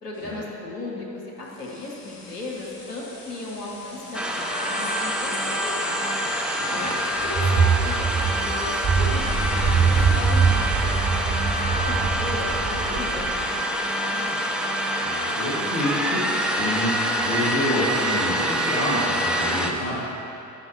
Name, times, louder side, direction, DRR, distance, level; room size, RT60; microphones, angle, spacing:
voice 1, 0.0-6.3 7.2-8.0 8.3-14.4, left 2 dB, 85° left, -4 dB, 1.1 m, -36 dB
sound 1, 1.4-12.5, left 2 dB, 65° left, 1.7 m, -41 dB
sound 2, 4.1-19.7, equal, ahead, 0.5 m, -26 dB
voice 2, 6.6-7.0 15.0-20.0, left 1 dB, 45° left, -9 dB, 1.6 m, -28 dB
sound 3, 7.2-13.5, right 5 dB, 45° right, 1.1 m, -23 dB
10.5 x 5.9 x 3.1 m, 2.8 s
figure-of-eight pair, 55°, 46 cm